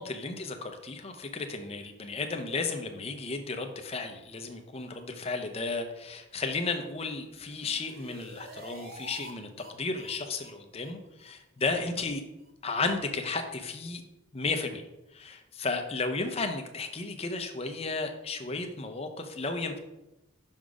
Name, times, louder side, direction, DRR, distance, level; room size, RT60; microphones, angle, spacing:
voice 1, 0.0-9.5 9.8-12.2 12.6-14.0 14.3-14.8 15.1-19.8, left 3 dB, 30° left, 5 dB, 0.6 m, -33 dB
sound 1, 7.3-9.3 9.6-9.7 10.0-10.1 10.4-10.5 10.8-10.9 11.2-11.3 11.6-11.7 12.0-12.1 12.4-12.5, right 1 dB, 45° right, 0.9 m, -48 dB
6.2 x 3.9 x 4.8 m, 0.97 s
head